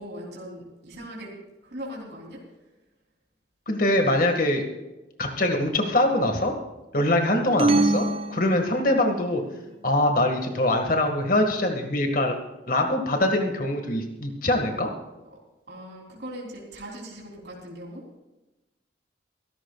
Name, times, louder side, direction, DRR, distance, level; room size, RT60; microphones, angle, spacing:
voice 1, 0.0-1.3 1.6-2.4 9.1-9.6 15.7-18.2, equal, 65° right, -3 dB, 3.5 m, -40 dB
voice 2, 3.7-4.6 5.2-6.5 6.9-9.4 9.8-12.4 12.7-14.9, left 1 dB, 50° left, 4 dB, 1.8 m, -23 dB
sound 1, 7.6-9.3, right 2 dB, 30° right, 0.6 m, -24 dB
24.0 x 12.5 x 2.4 m, 1.0 s
head